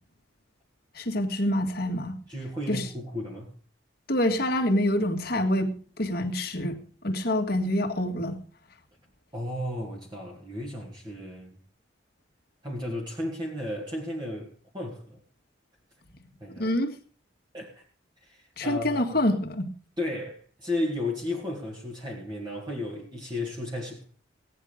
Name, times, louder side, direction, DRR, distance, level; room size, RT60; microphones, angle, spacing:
voice 1, 1.0-2.2 2.7-2.9 4.1-5.7 6.0-6.8 7.0-8.4 16.6-16.9 18.6-19.7, left 1 dB, 50° left, 4 dB, 2.0 m, -26 dB
voice 2, 2.3-3.5 9.3-11.6 12.6-15.2 16.4-16.7 17.5-17.8 18.2-19.2 20.0-24.0, left 1 dB, 25° right, -1 dB, 2.1 m, -34 dB
17.5 x 10.0 x 5.1 m, 0.42 s
head